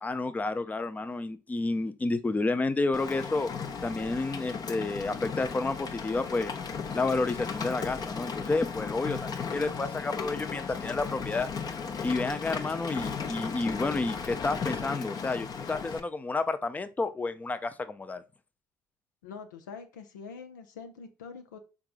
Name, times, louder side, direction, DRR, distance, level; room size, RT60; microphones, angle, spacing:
voice 1, 0.0-3.5 3.8-6.5 6.9-11.5 12.0-18.2, left 3 dB, 15° left, 0.5 m, -30 dB
Rain, 2.9-16.0, left 6 dB, 40° left, 0.8 m, -36 dB
voice 2, 19.2-21.6, left 5 dB, 80° left, 0.5 m, -44 dB
4.7 x 3.6 x 2.4 m
hypercardioid pair, 55°, 10 cm